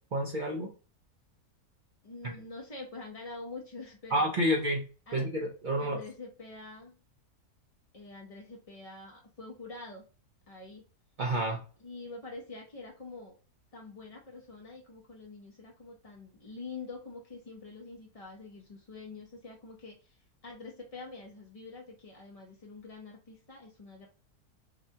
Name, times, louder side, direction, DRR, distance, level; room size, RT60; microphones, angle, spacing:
voice 1, 0.1-0.7 2.2-2.4 4.1-4.8 5.1-6.0 11.2-11.6, equal, 60° right, 1 dB, 0.5 m, -29 dB
voice 2, 2.0-4.3 5.1-5.3 5.8-6.9 7.9-10.0 10.5-10.8 11.8-13.3 13.7-24.1, left 3 dB, 50° left, -1 dB, 0.4 m, -46 dB
4.8 x 2.2 x 2.7 m, 0.37 s
omnidirectional pair, 1.6 m